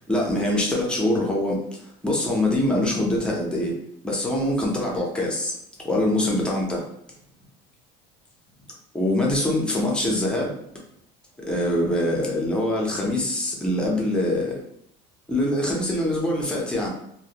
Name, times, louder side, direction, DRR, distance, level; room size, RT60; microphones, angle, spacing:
voice 1, 0.1-1.7 2.0-3.8 4.0-5.5 5.8-6.9 8.9-10.6 11.5-14.6 15.3-16.9, left 1 dB, 5° left, -2 dB, 0.4 m, -24 dB
2.5 x 2.0 x 2.7 m, 0.72 s
cardioid pair, 155°, 19 cm